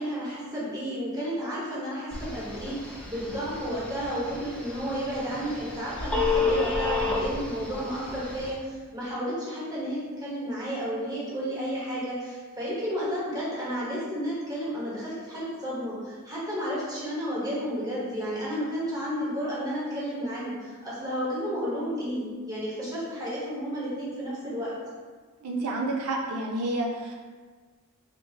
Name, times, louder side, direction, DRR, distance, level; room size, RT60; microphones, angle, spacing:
voice 1, 0.0-24.7, equal, 15° right, -8 dB, 1.1 m, -32 dB
Telephone, 2.1-8.5, left 3 dB, 5° left, 0.5 m, -31 dB
voice 2, 25.4-27.1, right 2 dB, 85° right, 0 dB, 0.4 m, -29 dB
3.4 x 2.6 x 2.8 m, 1.4 s
head